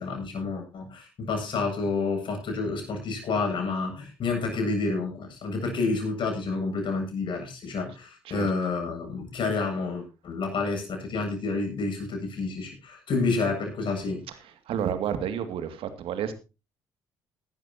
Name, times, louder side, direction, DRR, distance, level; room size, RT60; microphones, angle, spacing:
voice 1, 0.0-14.2, left 3 dB, 55° left, 3 dB, 7.9 m, -29 dB
voice 2, 14.7-16.3, right 8 dB, 65° right, 9 dB, 2.4 m, -30 dB
18.0 x 12.5 x 2.9 m, 0.29 s
hypercardioid pair, 55°, 10 cm